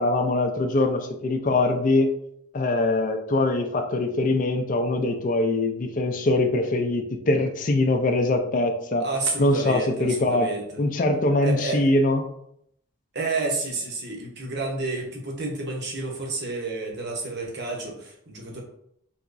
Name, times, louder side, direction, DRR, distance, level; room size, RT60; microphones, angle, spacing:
voice 1, 0.0-2.1 2.5-9.0 9.4-10.5 10.8-12.2, left 2 dB, 40° left, 5 dB, 0.4 m, -23 dB
voice 2, 9.0-10.8 11.4-11.9 13.1-18.6, right 3 dB, 50° right, 0 dB, 0.8 m, -30 dB
3.4 x 2.9 x 2.5 m, 0.72 s
head